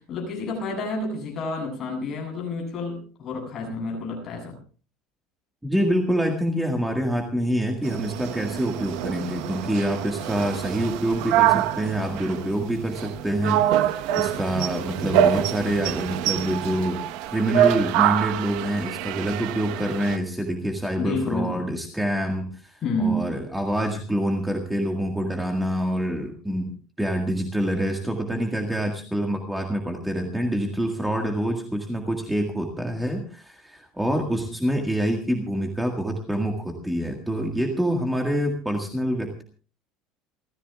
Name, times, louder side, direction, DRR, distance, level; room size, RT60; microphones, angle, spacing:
voice 1, 0.0-4.6 21.0-21.7 22.8-23.3, left 2 dB, 30° left, 1 dB, 7.7 m, -29 dB
voice 2, 5.6-17.0 17.3-26.7 27.0-39.4, equal, 5° right, 2 dB, 1.8 m, -26 dB
sound 1, 7.8-20.2, right 12 dB, 65° right, 1.0 m, -25 dB
29.0 x 14.5 x 2.4 m, 0.39 s
cardioid pair, 170°, 0 cm